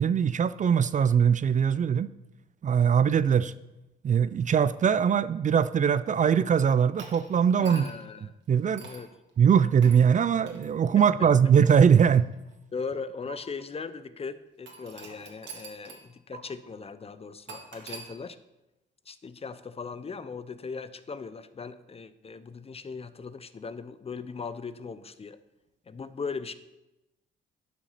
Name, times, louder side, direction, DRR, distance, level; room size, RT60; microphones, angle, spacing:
voice 1, 0.0-2.1 2.6-3.5 4.0-7.9 8.5-8.8 9.4-12.3, right 7 dB, 40° right, 16 dB, 0.4 m, -21 dB
sound 1, 7.0-8.1 8.8-9.1 9.8-10.0 10.5-10.7 11.4-12.5 13.3-13.4 14.7-16.1 16.3-16.4 17.5-18.1, right 5 dB, 70° right, 2.2 m, -45 dB
voice 2, 7.6-8.3 8.8-9.1 11.0-11.3 12.7-18.4 19.1-25.4 25.9-26.5, left 5 dB, 30° left, 14 dB, 0.7 m, -39 dB
11.0 x 6.0 x 5.7 m, 0.96 s
cardioid pair, 90°, 20 cm